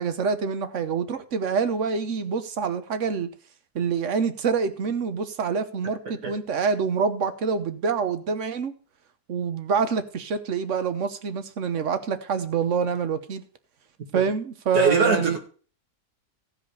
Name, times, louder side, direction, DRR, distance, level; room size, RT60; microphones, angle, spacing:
voice 1, 0.0-3.3 3.7-8.7 9.3-13.4 14.1-15.4, right 6 dB, 55° right, 1.2 m, -26 dB
voice 2, 14.7-15.4, right 3 dB, 80° right, 2.6 m, -22 dB
15.0 x 5.1 x 6.3 m
omnidirectional pair, 1.6 m